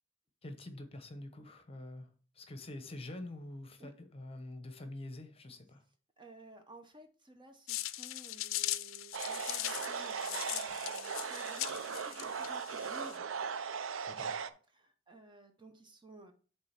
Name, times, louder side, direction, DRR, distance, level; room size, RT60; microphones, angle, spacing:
voice 1, 0.4-5.8 14.1-14.6, left 1 dB, 30° left, 1.0 m, -46 dB
voice 2, 6.2-13.2 14.7-16.3, right 2 dB, 25° right, 0.9 m, -55 dB
sound 1, 7.7-13.2, left 16 dB, 90° left, 0.4 m, -40 dB
sound 2, 9.1-14.5, right 6 dB, 80° right, 0.5 m, -38 dB
7.5 x 3.5 x 5.8 m
head